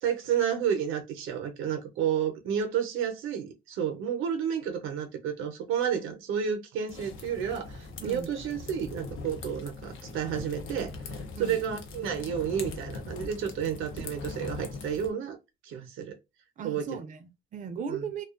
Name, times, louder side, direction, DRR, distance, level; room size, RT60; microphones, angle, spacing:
voice 1, 0.0-10.9 11.4-15.4 15.6-16.1 16.6-17.0 17.9-18.1, right 8 dB, 85° right, 0.6 m, -31 dB
sound 1, 6.9-15.1, left 3 dB, 80° left, 0.6 m, -41 dB
voice 2, 8.0-8.3 11.4-11.6 16.6-18.2, right 6 dB, 40° right, 0.4 m, -37 dB
2.4 x 2.2 x 2.4 m
cardioid pair, 90°, 20 cm